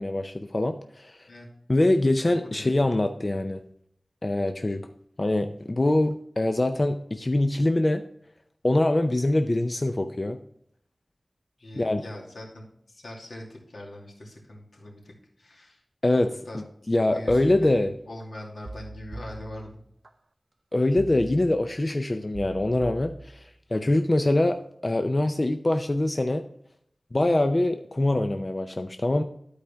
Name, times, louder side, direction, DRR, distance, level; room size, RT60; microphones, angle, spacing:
voice 1, 0.0-1.2 1.7-3.6 4.2-4.8 5.2-8.0 8.6-10.4 11.8-12.0 16.0-16.3 16.9-17.9 20.7-24.6 24.8-26.4 27.1-29.2, left 1 dB, 35° left, 7 dB, 0.5 m, -24 dB
voice 2, 2.2-2.7 11.6-15.8 16.4-16.6 17.1-19.8, left 1 dB, 80° left, -2 dB, 2.5 m, -42 dB
sound 1, 17.3-18.2 18.6-20.1 21.0-21.9 22.3-23.8 24.2-24.6, right 2 dB, 50° right, 0.6 m, -43 dB
12.0 x 4.8 x 3.5 m, 0.71 s
wide cardioid pair, 75°, 0 cm